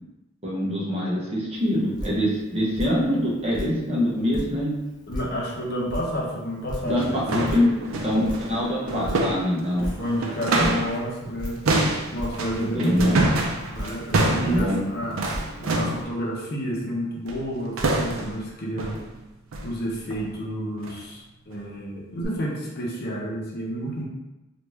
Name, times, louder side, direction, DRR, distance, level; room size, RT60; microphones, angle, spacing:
voice 1, 0.4-4.7 6.8-9.9 10.5-10.8 12.7-13.2 14.5-14.8, left 1 dB, 30° right, -5 dB, 0.9 m, -24 dB
Drip, 1.5-16.0, equal, 20° left, 0.8 m, -39 dB
voice 2, 5.1-7.7 8.9-9.2 9.7-11.6 12.1-13.3 13.6-19.0 19.6-24.0, equal, 50° left, -3 dB, 0.7 m, -30 dB
sound 1, 6.1-6.2 6.8-11.0 11.2-16.1 17.3-17.5 17.8-18.4 18.8-19.1 19.5-19.7 20.1-20.3 20.8-21.0 21.5-21.6 22.2-22.3, right 2 dB, 80° right, 0.5 m, -27 dB
3.3 x 2.5 x 3.1 m, 1.0 s
head